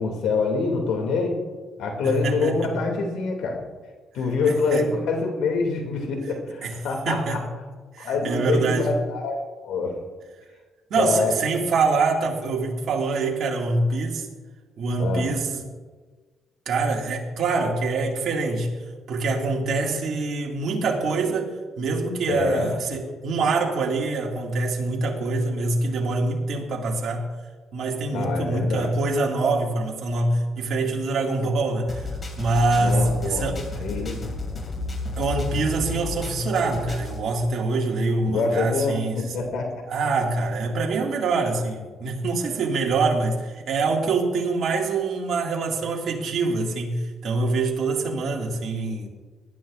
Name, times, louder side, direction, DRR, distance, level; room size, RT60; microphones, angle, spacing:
voice 1, 0.0-1.3 1.8-3.7 4.1-7.4 8.0-9.9 11.0-11.4 15.0-15.3 22.3-22.8 28.1-28.9 32.7-34.4 38.3-39.8, left 4 dB, 85° left, 2 dB, 2.5 m, -26 dB
voice 2, 2.0-2.7 4.5-4.9 6.6-6.7 7.1-7.4 7.9-8.9 10.9-14.3 14.8-15.6 16.7-18.7 19.1-27.3 27.7-32.1 32.4-33.7 35.2-39.2 39.9-49.1, right 3 dB, 65° right, -1 dB, 2.1 m, -25 dB
sound 1, 31.9-37.2, left 2 dB, 40° left, 2.3 m, -31 dB
19.5 x 11.0 x 2.5 m, 1.4 s
cardioid pair, 90°, 0 cm